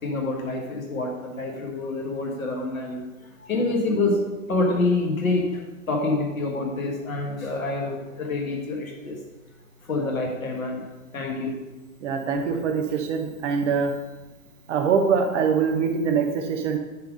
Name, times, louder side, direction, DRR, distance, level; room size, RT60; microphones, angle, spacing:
voice 1, 0.0-3.0 3.4-4.2 4.5-5.5 5.9-9.2 9.9-10.8 11.1-11.6, left 2 dB, 70° left, 0 dB, 1.6 m, -26 dB
voice 2, 12.0-13.9 14.7-16.8, right 6 dB, 55° right, 4 dB, 1.3 m, -23 dB
10.5 x 3.9 x 5.2 m, 1.1 s
figure-of-eight pair, 95°, 42 cm